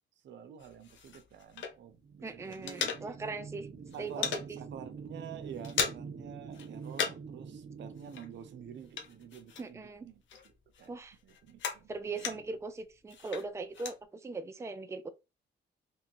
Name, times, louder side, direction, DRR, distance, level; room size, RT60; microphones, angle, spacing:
voice 1, 0.2-3.2 3.9-11.0 11.2-12.4, right 8 dB, 70° right, 0.7 m, -49 dB
sound 1, 0.6-2.1 2.3-3.5 3.7-4.5 4.9-5.1 5.4-6.2 6.5-7.4 7.6-10.0 10.3-12.6 13.1-14.0, left 7 dB, 80° left, 0.7 m, -38 dB
sound 2, 1.9-9.6, right 5 dB, 45° right, 0.9 m, -46 dB
voice 2, 2.2-3.7 4.0-4.6 9.6-10.1 10.9-11.2 11.9-15.1, right 3 dB, 15° right, 0.5 m, -40 dB
3.5 x 3.0 x 3.0 m
cardioid pair, 95°, 19 cm